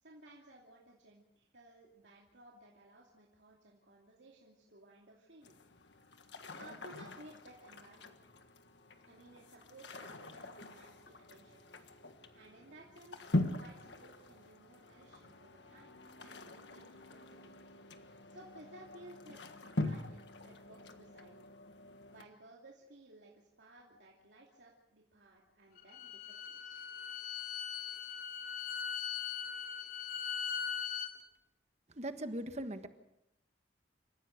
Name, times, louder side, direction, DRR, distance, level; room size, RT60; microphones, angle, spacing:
voice 1, 0.0-5.5 6.5-8.2 9.1-11.6 12.3-17.5 18.1-21.5 22.1-26.8, right 1 dB, 80° right, -2 dB, 2.7 m, -58 dB
sound 1, 5.4-22.2, left 2 dB, 75° left, 1.6 m, -43 dB
Bowed string instrument, 25.8-31.1, left 7 dB, 55° left, 2.9 m, -40 dB
voice 2, 31.9-32.9, right 1 dB, 40° right, 9 dB, 1.4 m, -40 dB
27.5 x 15.0 x 6.6 m, 0.87 s
head